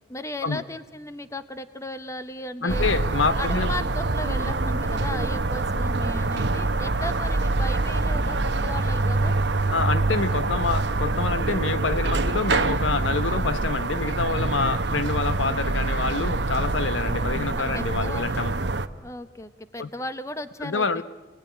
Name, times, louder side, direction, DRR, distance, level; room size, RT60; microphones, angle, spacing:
voice 1, 0.1-2.9 3.3-9.4 17.5-18.5 19.0-21.0, left 1 dB, 15° left, 11 dB, 1.0 m, -36 dB
voice 2, 2.6-3.7 9.7-18.5 19.8-19.9 20.6-21.0, left 4 dB, 90° left, 13 dB, 1.0 m, -27 dB
sound 1, 2.7-18.9, right 2 dB, 65° right, 1.0 m, -25 dB
29.0 x 19.0 x 10.0 m, 1.2 s
head